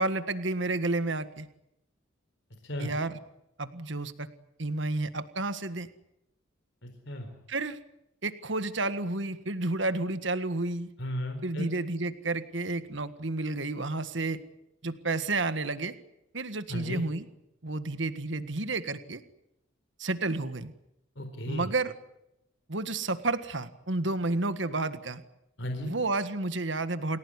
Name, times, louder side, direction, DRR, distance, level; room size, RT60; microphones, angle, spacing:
voice 1, 0.0-1.5 2.8-3.2 3.6-4.3 4.6-5.9 7.5-7.8 8.2-10.9 11.4-14.4 14.8-16.0 16.3-17.3 17.6-19.2 20.0-20.7 21.5-21.9 22.7-25.2 25.8-27.2, right 2 dB, 65° right, 11 dB, 1.7 m, -31 dB
voice 2, 6.8-7.3 11.0-11.7 16.7-17.1 21.2-21.7 25.6-25.9, equal, 65° left, 5 dB, 4.2 m, -35 dB
28.5 x 17.0 x 9.8 m, 0.84 s
head